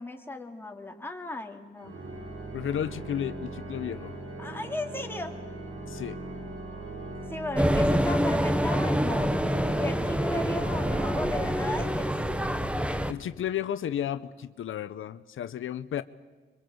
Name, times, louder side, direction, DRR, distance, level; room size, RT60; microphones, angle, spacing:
voice 1, 0.0-1.9 4.4-5.4 7.3-9.4 9.8-12.9, left 2 dB, 10° left, 3 dB, 2.8 m, -36 dB
Organ, 1.8-12.6, right 2 dB, 70° right, 5.1 m, -40 dB
voice 2, 2.5-4.2 5.9-6.2 13.1-16.0, left 10 dB, 80° left, 14 dB, 0.7 m, -33 dB
sound 1, 7.5-13.1, equal, 5° right, 1.2 m, -26 dB
25.5 x 23.5 x 7.9 m, 1.3 s
cardioid pair, 105°, 21 cm